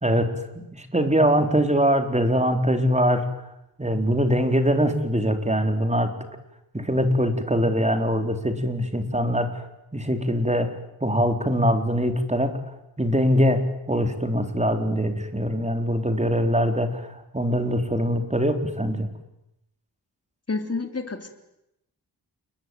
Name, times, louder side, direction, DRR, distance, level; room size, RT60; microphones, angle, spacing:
voice 1, 0.0-3.2 3.8-6.1 6.7-9.5 9.9-10.7 11.0-12.6 13.0-17.1 17.3-19.1, equal, 15° right, 7 dB, 3.9 m, -22 dB
voice 2, 20.5-21.3, left 3 dB, 40° left, 6 dB, 3.7 m, -29 dB
29.5 x 21.0 x 9.4 m, 0.86 s
wide cardioid pair, 90°, 39 cm